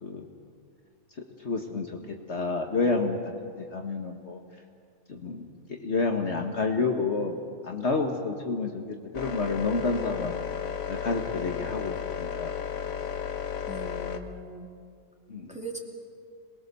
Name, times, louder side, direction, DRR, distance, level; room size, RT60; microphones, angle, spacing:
voice 1, 1.4-3.3 3.6-4.4 5.1-5.5 5.8-7.4 7.6-10.3 10.9-12.5 15.3-15.6, left 3 dB, 50° left, 2 dB, 1.7 m, -29 dB
sound 1, 9.1-14.2, left 8 dB, 75° left, 1.5 m, -33 dB
voice 2, 13.7-14.7 15.5-15.8, right 2 dB, 5° right, 0 dB, 2.5 m, -39 dB
27.5 x 20.5 x 6.8 m, 2.3 s
omnidirectional pair, 1.5 m